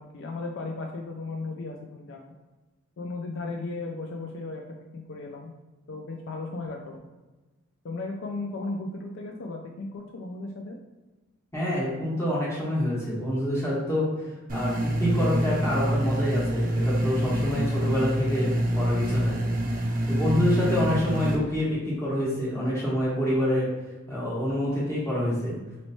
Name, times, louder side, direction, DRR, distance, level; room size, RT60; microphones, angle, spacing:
voice 1, 0.0-2.3 3.0-4.6 4.9-5.5 5.9-7.1 7.8-10.8, left 3 dB, 55° left, 1 dB, 0.4 m, -35 dB
voice 2, 11.5-14.1 14.5-19.3 20.1-23.7 24.1-25.6, equal, 15° left, -7 dB, 1.2 m, -27 dB
sound 1, 14.5-21.4, equal, 40° right, 0.5 m, -26 dB
4.2 x 3.0 x 2.7 m, 1.2 s
head